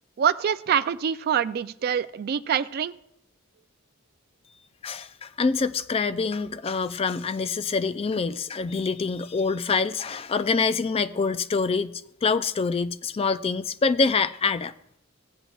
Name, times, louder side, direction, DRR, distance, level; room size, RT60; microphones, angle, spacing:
voice 1, 0.2-2.9, right 8 dB, 45° right, 0.3 m, -25 dB
voice 2, 4.8-14.7, left 4 dB, 25° left, 0.3 m, -26 dB
16.0 x 8.0 x 2.3 m
head